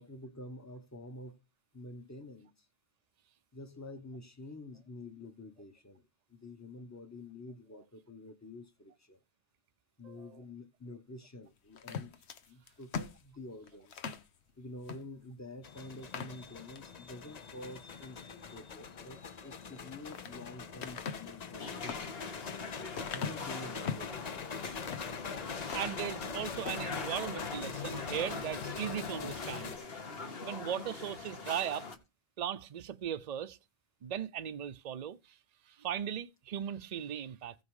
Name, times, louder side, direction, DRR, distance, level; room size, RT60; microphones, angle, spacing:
voice 1, 0.0-1.4 1.7-2.5 3.5-6.0 6.3-9.2 10.0-12.2 12.5-14.0 14.6-22.1 23.1-24.2, left 2 dB, 15° left, 0.9 m, -48 dB
voice 2, 10.0-10.4 25.7-29.7 30.4-31.9 32.4-33.6 34.0-35.4 35.7-37.6, right 9 dB, 45° right, 0.6 m, -38 dB
sound 1, 11.8-14.3 14.8-15.0 15.4-15.5 15.9-16.9 17.4-17.8 19.6-20.4 20.8-24.1 24.6-25.2 25.6-26.3 26.6-26.9, left 6 dB, 85° left, 1.2 m, -42 dB
sound 2, 15.6-29.8, left 6 dB, 45° left, 0.7 m, -43 dB
sound 3, 21.6-32.0, left 4 dB, 65° left, 1.5 m, -43 dB
15.5 x 5.4 x 4.8 m
omnidirectional pair, 1.1 m